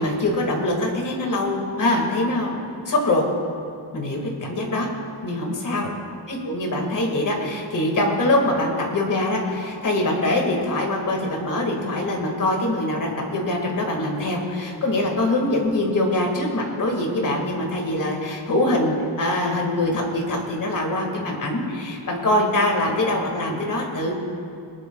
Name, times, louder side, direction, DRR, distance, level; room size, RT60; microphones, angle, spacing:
voice 1, 0.0-2.6 2.9-3.2 3.9-4.9 5.2-5.9 6.3-24.1, left 1 dB, 45° left, 1 dB, 1.9 m, -23 dB
22.0 x 11.5 x 2.3 m, 2.5 s
wide cardioid pair, 160°, 44 cm